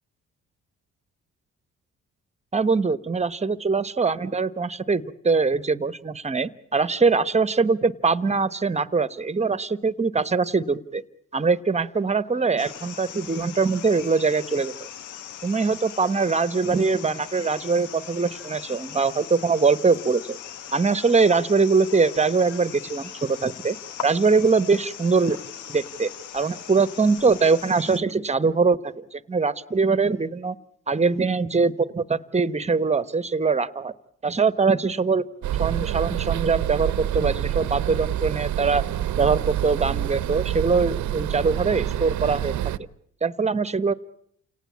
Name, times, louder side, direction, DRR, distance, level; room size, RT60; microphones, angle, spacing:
voice 1, 2.5-11.0 11.3-14.9 15.4-20.4 20.7-23.8 24.0-25.4 25.7-30.5 30.9-33.9 34.2-35.2 35.6-38.8 39.2-42.5 43.2-43.9, right 4 dB, 20° right, 15 dB, 1.1 m, -22 dB
sound 1, 12.6-28.0, left 10 dB, 85° left, 1.1 m, -40 dB
sound 2, 35.4-42.8, right 12 dB, 70° right, 0.9 m, -27 dB
29.0 x 18.5 x 8.5 m, 0.72 s
cardioid pair, 90°, 30 cm